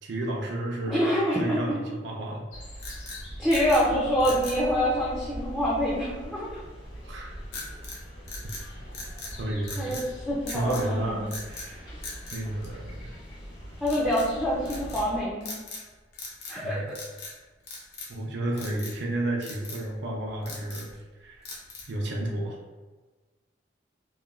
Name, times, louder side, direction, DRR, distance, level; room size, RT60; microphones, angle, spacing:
voice 1, 0.0-2.5 7.0-7.4 8.4-8.5 9.4-10.0 10.5-11.9 12.3-13.2 16.6-16.9 18.1-21.5 21.9-22.6, right 1 dB, 65° right, -1 dB, 0.4 m, -32 dB
voice 2, 0.9-1.8 3.4-6.6 9.8-11.3 13.8-15.5 16.5-17.0, equal, 5° left, -8 dB, 0.4 m, -26 dB
Highbury and Islington - Playground + Birds, 2.5-15.2, equal, 80° left, 1.0 m, -41 dB
sound 1, 2.8-3.9 4.2-4.6 7.5-8.0 8.3-9.4 9.6-10.1 10.5-10.9 11.3-11.7 12.0-13.2 13.8-14.3 14.7-15.1 15.4-15.9 16.1-16.6 16.9-17.4 17.7-18.2 18.6-19.0 19.4-19.8 20.3-21.0 21.4-22.0, left 3 dB, 55° left, 0.6 m, -40 dB
3.0 x 2.2 x 2.4 m, 1.3 s
head